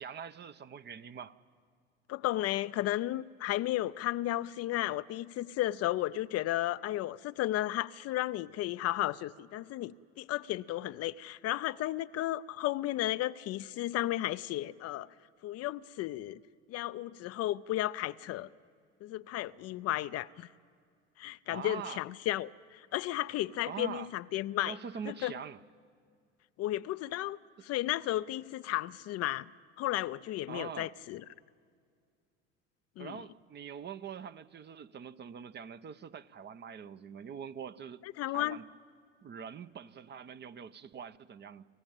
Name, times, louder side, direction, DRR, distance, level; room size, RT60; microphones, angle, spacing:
voice 1, 0.0-1.3 21.5-22.0 23.7-24.1 24.6-25.6 30.5-30.9 33.0-38.0 38.3-38.7 39.2-41.6, right 7 dB, 30° right, 0.7 m, -44 dB
voice 2, 2.1-15.1 15.4-16.4 16.7-18.5 19.0-20.5 21.2-24.8 25.1-25.3 26.6-27.4 27.6-29.5 29.8-31.2 33.0-33.2 38.0-38.6, left 15 dB, 45° left, 0.6 m, -34 dB
28.5 x 15.0 x 8.9 m
hypercardioid pair, 70°, 36 cm